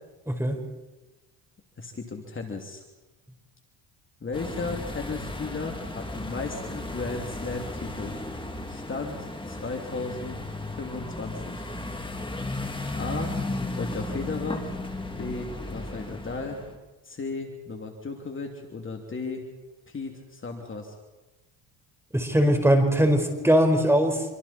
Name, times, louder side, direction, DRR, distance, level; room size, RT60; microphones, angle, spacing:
voice 1, 1.8-2.8 4.2-8.1 8.7-10.4 10.8-11.6 12.9-13.4 13.8-14.6 15.2-16.6 17.0-19.5 19.9-21.0, left 4 dB, 30° left, 2 dB, 3.0 m, -35 dB
sound 1, 4.3-16.7, left 2 dB, 10° left, 2.8 m, -35 dB
voice 2, 22.1-24.2, equal, 5° right, 4 dB, 4.8 m, -21 dB
26.5 x 25.0 x 4.4 m, 1.1 s
supercardioid pair, 85°, 40 cm